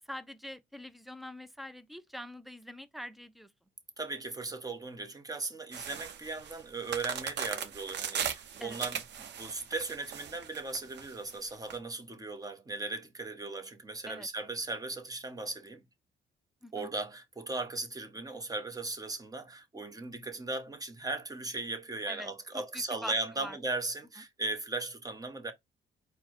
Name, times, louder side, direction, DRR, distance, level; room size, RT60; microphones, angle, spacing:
voice 1, 0.1-3.5 8.6-8.8 14.1-14.3 16.6-16.9 22.1-23.6, equal, ahead, 0.5 m, -44 dB
voice 2, 4.0-15.8 16.7-25.5, right 3 dB, 20° right, 0.9 m, -37 dB
sound 1, 5.7-11.8, right 8 dB, 60° right, 0.7 m, -38 dB
4.4 x 2.1 x 4.4 m
cardioid pair, 90°, 20 cm